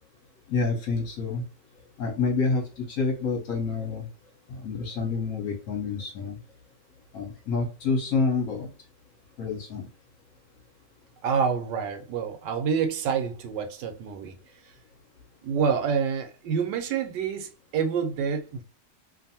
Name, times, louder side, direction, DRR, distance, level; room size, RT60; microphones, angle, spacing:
voice 1, 0.5-1.4 2.0-4.1 4.5-6.4 7.1-8.7 9.4-9.9, left 4 dB, 60° left, 1.0 m, -28 dB
voice 2, 11.2-14.4 15.4-18.6, right 6 dB, 80° right, 1.2 m, -27 dB
2.6 x 2.5 x 2.7 m
omnidirectional pair, 1.9 m